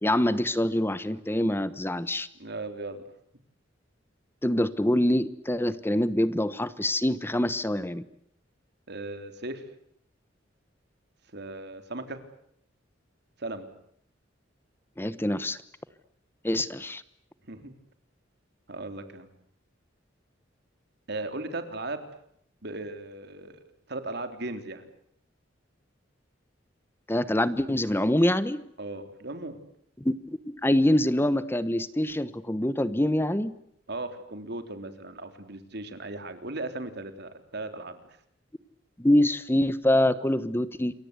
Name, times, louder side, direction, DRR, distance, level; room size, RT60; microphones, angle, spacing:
voice 1, 0.0-2.3 4.4-8.0 15.0-15.6 16.4-17.0 27.1-28.6 30.0-33.5 39.0-40.9, left 1 dB, 10° left, 15 dB, 1.0 m, -25 dB
voice 2, 2.4-3.0 8.9-9.6 11.3-12.2 13.4-13.7 17.5-17.7 18.7-19.3 21.1-22.1 22.6-24.9 28.8-29.6 33.9-38.0, right 2 dB, 60° right, 8 dB, 3.6 m, -37 dB
28.0 x 23.5 x 8.2 m, 0.71 s
head